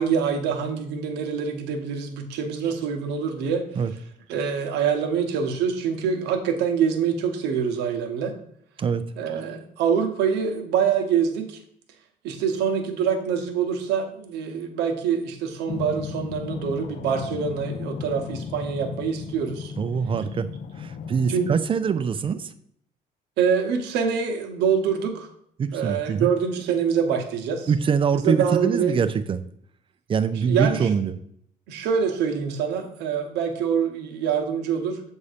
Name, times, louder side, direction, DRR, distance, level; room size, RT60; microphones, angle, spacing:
voice 1, 0.0-3.7 4.3-8.4 9.2-11.6 12.2-19.7 21.3-21.5 23.4-25.3 25.7-27.7 28.2-28.9 30.3-30.9 31.7-35.0, right 7 dB, 85° right, 5 dB, 0.9 m, -25 dB
sound 1, 15.7-21.5, left 6 dB, 50° left, 0.5 m, -35 dB
voice 2, 19.8-20.5 20.8-22.5 25.6-26.3 27.7-29.4 30.1-31.2, right 6 dB, 30° right, 12 dB, 0.4 m, -24 dB
7.1 x 2.7 x 5.0 m, 0.69 s
cardioid pair, 110°, 17 cm